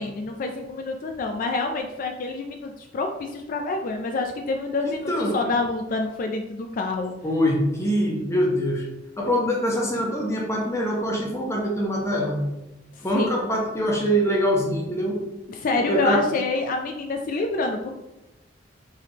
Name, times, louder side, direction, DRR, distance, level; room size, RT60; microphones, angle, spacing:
voice 1, 0.0-7.1 13.0-13.3 15.5-17.9, left 3 dB, 45° left, 4 dB, 0.3 m, -27 dB
voice 2, 4.8-5.4 7.2-8.9 9.2-12.4 13.0-15.2 15.9-16.2, equal, 15° left, -1 dB, 0.8 m, -24 dB
4.7 x 3.4 x 2.8 m, 0.96 s
head